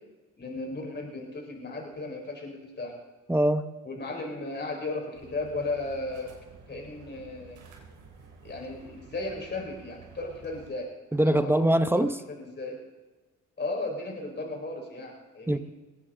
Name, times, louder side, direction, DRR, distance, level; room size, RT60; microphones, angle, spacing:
voice 1, 0.4-2.9 3.8-6.3 6.7-7.6 8.4-11.6 11.9-12.1 12.4-12.8 13.6-15.6, left 2 dB, 35° left, 1 dB, 4.9 m, -35 dB
voice 2, 3.3-3.7 11.1-12.2 15.5-15.6, right 1 dB, 10° right, 10 dB, 0.9 m, -23 dB
sound 1, 5.1-10.7, right 4 dB, 85° right, 4.0 m, -51 dB
20.5 x 17.0 x 3.9 m, 1.2 s
cardioid pair, 90°, 30 cm